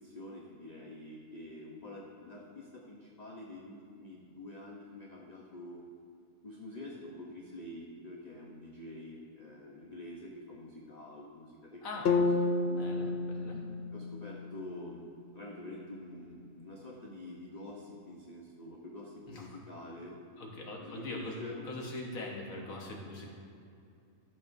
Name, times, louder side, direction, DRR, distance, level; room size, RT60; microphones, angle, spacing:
voice 1, 0.0-5.8 6.4-12.5 13.9-15.0 15.3-20.2 20.8-21.7, left 1 dB, 35° left, -2 dB, 0.7 m, -47 dB
voice 2, 11.8-12.1 12.7-13.6 19.3-19.5 20.4-23.3, left 2 dB, 60° left, -1 dB, 1.8 m, -42 dB
sound 1, 12.1-16.1, left 3 dB, 90° left, 0.5 m, -32 dB
14.0 x 7.6 x 2.6 m, 2.6 s
omnidirectional pair, 1.7 m